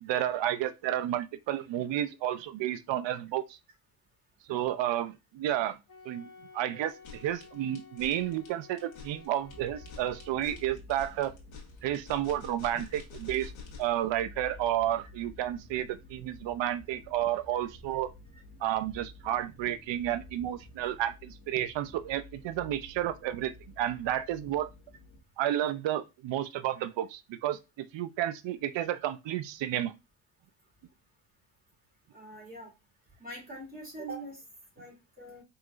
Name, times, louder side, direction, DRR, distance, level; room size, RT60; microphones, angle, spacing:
voice 1, 0.0-3.6 4.5-5.8 6.1-6.3 6.5-11.3 11.8-13.5 13.8-18.1 18.6-24.7 25.4-29.9, right 12 dB, 70° right, 0.7 m, -31 dB
Wind instrument woodwind instrument, 5.9-10.8, left 4 dB, 45° left, 1.4 m, -53 dB
sound 1, 6.9-14.0, left 6 dB, 85° left, 1.7 m, -48 dB
sound 2, 9.5-25.2, left 2 dB, 30° left, 1.5 m, -51 dB
voice 2, 32.1-32.7 33.2-34.4 34.8-35.4, right 2 dB, 20° right, 2.9 m, -43 dB
4.6 x 3.8 x 2.5 m
cardioid pair, 95°, 45 cm